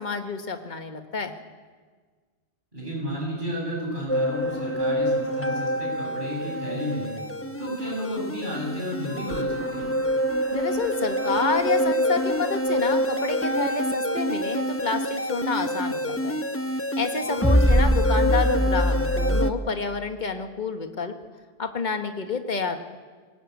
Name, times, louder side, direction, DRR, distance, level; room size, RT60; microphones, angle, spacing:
voice 1, 0.0-1.3 10.5-16.4 17.0-21.2 21.6-22.8, left 4 dB, 45° left, 6 dB, 1.7 m, -29 dB
voice 2, 2.7-7.1 7.6-9.9 17.4-17.8, equal, 50° right, -2 dB, 8.3 m, -32 dB
sound 1, 4.1-19.5, equal, 15° left, 0.9 m, -25 dB
22.0 x 19.0 x 8.4 m, 1.5 s
omnidirectional pair, 1.1 m